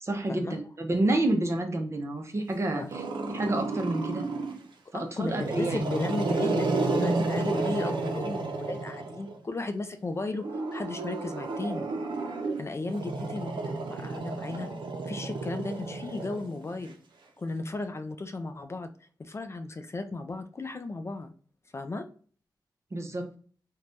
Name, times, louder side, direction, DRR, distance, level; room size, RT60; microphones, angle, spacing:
voice 1, 0.0-3.0 3.3-4.2 4.9-5.8 22.9-23.3, right 2 dB, 35° right, 4 dB, 0.6 m, -29 dB
Growling, 2.9-4.7 5.2-9.4 10.3-16.9, right 3 dB, 85° right, 0.5 m, -32 dB
voice 2, 4.9-11.9 12.6-14.7 15.1-16.9 17.4-18.9 19.2-21.3 21.7-22.0, left 2 dB, 35° left, 8 dB, 0.3 m, -35 dB
3.2 x 2.2 x 2.5 m, 0.43 s
wide cardioid pair, 85°, 8 cm